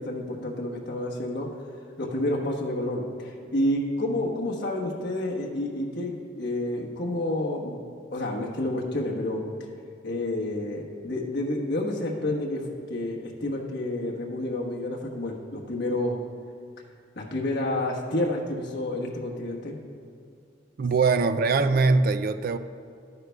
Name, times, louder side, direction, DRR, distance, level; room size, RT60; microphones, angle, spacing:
voice 1, 0.0-1.5 2.0-7.8 8.1-9.4 10.0-16.2 17.1-19.8, left 1 dB, 60° left, -2 dB, 1.3 m, -29 dB
voice 2, 20.8-22.6, right 4 dB, 50° right, 11 dB, 0.4 m, -22 dB
12.5 x 9.5 x 2.3 m, 2.3 s
head